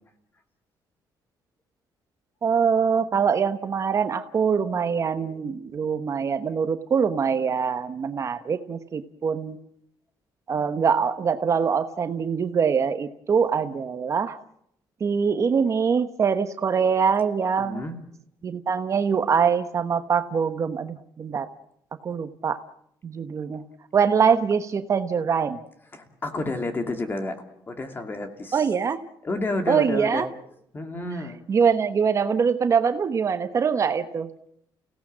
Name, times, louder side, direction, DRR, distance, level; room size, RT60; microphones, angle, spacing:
voice 1, 2.4-9.6 10.5-14.4 15.0-17.8 18.4-21.5 22.0-22.6 23.0-23.6 23.9-25.6 28.5-29.0 29.7-30.3 31.5-34.3, right 6 dB, 40° right, 10 dB, 1.0 m, -23 dB
voice 2, 17.6-18.0 25.9-28.7 29.2-30.3 30.7-31.4, left 2 dB, 25° left, 7 dB, 2.6 m, -30 dB
29.5 x 17.0 x 7.5 m, 0.74 s
cardioid pair, 130°, 8 cm